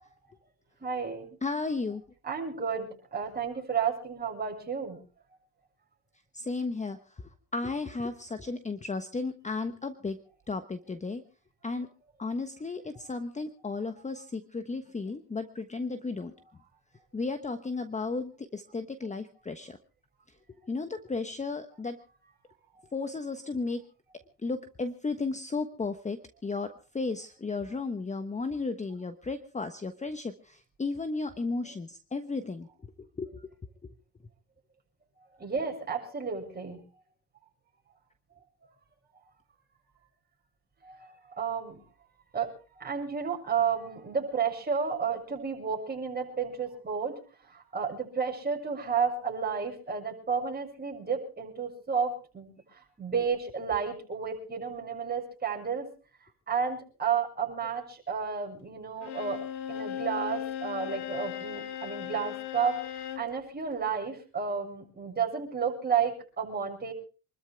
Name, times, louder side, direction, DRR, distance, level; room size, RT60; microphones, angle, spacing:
voice 1, 0.8-1.3 2.2-5.0 35.4-36.8 40.8-41.1 41.4-41.8 42.3-47.2 47.5-52.5 53.0-55.9 56.5-66.9, right 6 dB, 20° right, 0 dB, 7.1 m, -32 dB
voice 2, 1.4-2.0 6.3-7.0 7.5-10.2 10.5-11.2 11.6-11.9 12.2-16.3 17.1-19.8 20.7-22.0 22.9-23.8 24.4-32.7 33.0-33.3, left 3 dB, 15° left, 10 dB, 1.2 m, -34 dB
Bowed string instrument, 59.0-63.3, left 10 dB, 65° left, 2.2 m, -37 dB
27.0 x 13.0 x 3.5 m, 0.37 s
cardioid pair, 105°, 43 cm